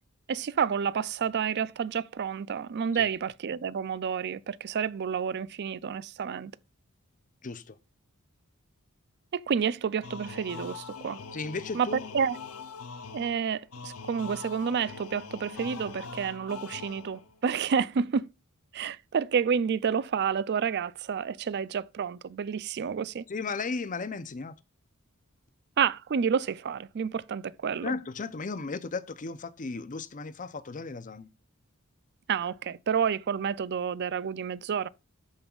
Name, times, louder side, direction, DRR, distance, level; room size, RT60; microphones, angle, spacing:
voice 1, 0.3-6.5 9.3-11.2 11.7-12.4 13.1-18.3 18.7-23.2 25.8-27.9 32.3-34.9, right 7 dB, 50° right, 0.4 m, -29 dB
voice 2, 7.4-7.8 11.3-12.0 23.3-24.5 27.8-31.3, left 4 dB, 40° left, 0.6 m, -35 dB
sound 1, 10.0-17.4, left 4 dB, 80° left, 0.7 m, -43 dB
13.0 x 5.3 x 2.4 m
head